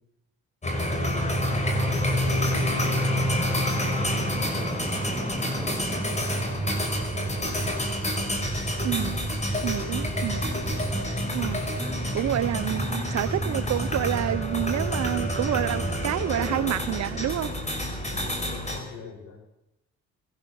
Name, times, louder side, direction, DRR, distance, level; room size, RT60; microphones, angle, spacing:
sound 1, 0.6-18.8, left 1 dB, 25° left, 5.4 m, -29 dB
voice 1, 0.7-6.7 18.0-19.3, left 4 dB, 70° left, 7.8 m, -45 dB
sound 2, 0.7-16.1, right 2 dB, 10° right, 1.2 m, -32 dB
voice 2, 8.8-9.3 9.6-10.4 11.3-11.7 12.1-17.5, right 12 dB, 60° right, 0.9 m, -28 dB
21.0 x 17.5 x 7.2 m
cardioid pair, 90°, 30 cm